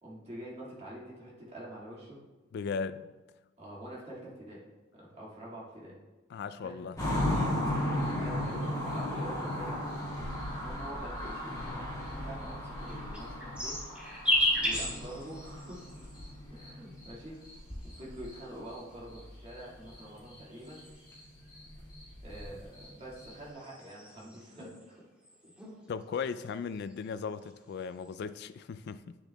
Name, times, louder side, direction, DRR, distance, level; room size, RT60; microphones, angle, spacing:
voice 1, 0.0-2.2 3.6-4.6 4.9-5.9 6.6-6.8 7.6-9.9 10.6-13.8 14.5-15.8 16.5-17.4 17.9-20.8 22.2-25.0 25.4-25.5, right 1 dB, 30° right, 1.9 m, -46 dB
voice 2, 2.5-3.1 6.3-7.0 7.3-7.7 25.9-29.2, left 5 dB, 55° left, 0.3 m, -37 dB
sound 1, 7.0-17.1 17.4-18.4 18.7-18.8 19.1-20.0 20.3-20.4 20.7-23.5, left 1 dB, 20° left, 1.8 m, -36 dB
sound 2, 12.8-16.3 17.2-18.5 19.4-21.3 22.7-24.8 25.2-25.7 26.0-27.1 27.4-28.1, left 1 dB, 5° right, 1.6 m, -35 dB
9.8 x 7.2 x 2.2 m
head